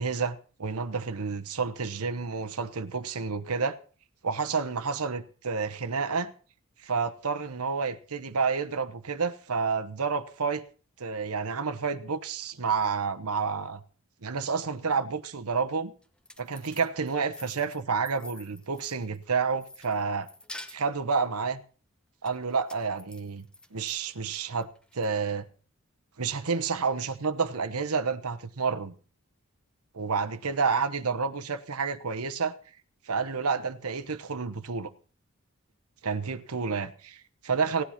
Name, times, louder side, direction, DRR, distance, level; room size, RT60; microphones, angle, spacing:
voice 1, 0.0-3.8 4.2-6.3 6.8-10.6 11.0-13.8 14.2-15.9 16.4-20.3 20.7-21.6 22.2-23.5 23.7-24.7 24.9-25.4 26.2-28.9 29.9-32.5 33.1-34.9 36.0-37.8, right 5 dB, 90° right, 1.0 m, -29 dB
sound 1, 16.0-19.2 19.6-21.1 22.3-24.0 24.3-25.1, left 1 dB, 5° left, 0.8 m, -47 dB
17.0 x 10.0 x 5.8 m
head